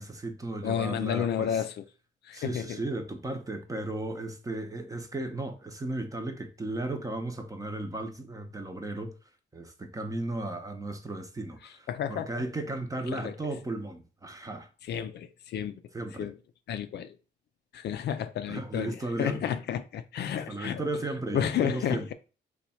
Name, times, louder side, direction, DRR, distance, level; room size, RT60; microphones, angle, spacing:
voice 1, 0.0-1.5 2.3-9.1 9.5-14.7 15.9-16.3 18.5-19.4 20.3-22.1, right 2 dB, 15° right, 0.7 m, -35 dB
voice 2, 0.6-1.9 2.2-2.8 11.6-12.4 13.1-13.3 14.8-15.8 16.2-16.4 16.7-17.2 17.7-20.8 21.3-22.1, left 9 dB, 60° left, 0.4 m, -31 dB
3.0 x 2.3 x 4.2 m
cardioid pair, 90°, 20 cm